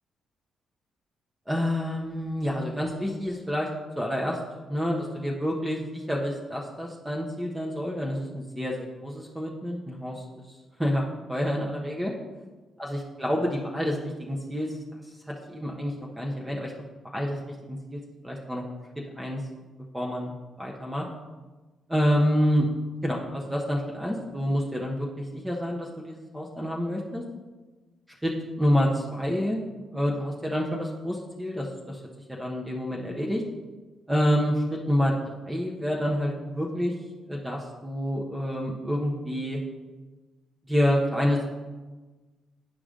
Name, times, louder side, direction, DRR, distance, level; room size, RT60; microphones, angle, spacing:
voice 1, 1.5-3.7 4.0-4.4 4.7-11.0 11.3-12.1 12.8-14.8 15.3-16.7 17.1-17.4 17.7-18.6 19.2-19.4 19.9-20.3 20.6-21.0 21.9-22.7 23.0-27.2 28.2-29.6 29.9-32.0 32.3-33.4 34.1-35.1 35.5-36.9 37.3-39.6 40.7-41.5, equal, 10° right, -2 dB, 1.2 m, -28 dB
9.5 x 4.8 x 3.8 m, 1.3 s
hypercardioid pair, 50°, 0 cm